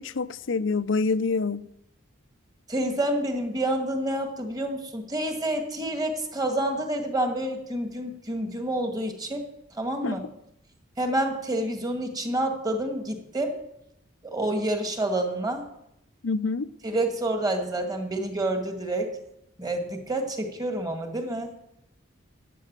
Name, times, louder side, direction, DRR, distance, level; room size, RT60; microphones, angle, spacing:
voice 1, 0.0-1.7 10.0-10.3 16.2-16.7, left 4 dB, 65° left, 0.6 m, -27 dB
voice 2, 2.7-9.4 9.8-10.2 11.0-13.6 14.2-15.7 16.8-19.1 19.6-21.5, right 1 dB, 20° right, 2.0 m, -28 dB
14.0 x 10.0 x 7.5 m
head